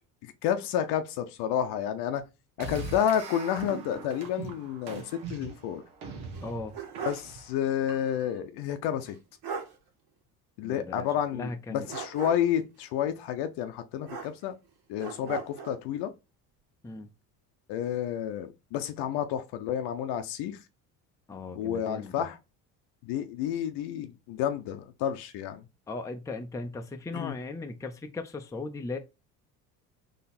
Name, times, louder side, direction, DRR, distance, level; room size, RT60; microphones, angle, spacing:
voice 1, 0.2-2.2 2.6-5.8 7.0-9.2 10.6-14.5 14.9-16.1 17.7-20.6 21.6-22.4 23.0-25.6 27.1-27.3, left 10 dB, 65° left, 0.7 m, -30 dB
sound 1, 2.6-8.4, right 4 dB, 75° right, 1.2 m, -41 dB
sound 2, 6.3-7.4 7.7-7.8 9.1-9.2 9.4-9.8 11.9-12.6 14.0-14.7 15.0-15.8, right 6 dB, 60° right, 1.8 m, -38 dB
voice 2, 6.4-6.7 10.6-11.9 15.2-15.3 16.8-17.1 21.3-22.3 25.9-29.0, left 3 dB, 5° left, 0.6 m, -38 dB
3.9 x 3.0 x 4.2 m
hypercardioid pair, 70°, 45 cm